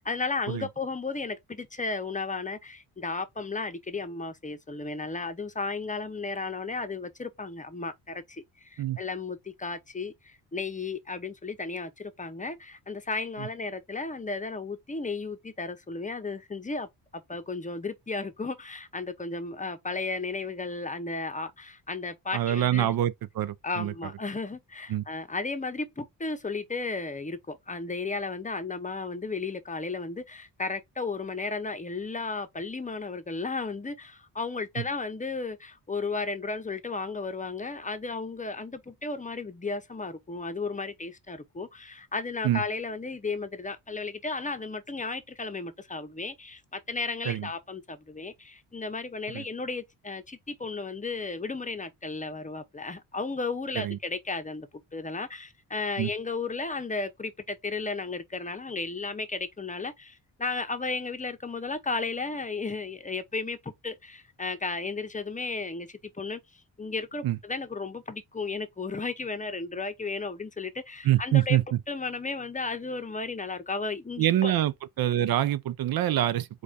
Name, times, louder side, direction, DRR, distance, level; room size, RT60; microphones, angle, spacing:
voice 1, 0.0-16.9 17.1-22.9 23.6-65.9 66.1-66.4 66.8-74.5 75.2-75.3, left 3 dB, 20° left, 0.7 m, -34 dB
voice 2, 22.3-23.9 24.9-25.0 34.8-34.9 42.4-42.6 47.3-47.5 49.3-49.4 53.7-54.0 56.0-56.1 67.2-67.4 71.0-71.6 74.2-76.5, right 12 dB, 60° right, 0.5 m, -25 dB
4.8 x 2.4 x 4.0 m
cardioid pair, 90°, 41 cm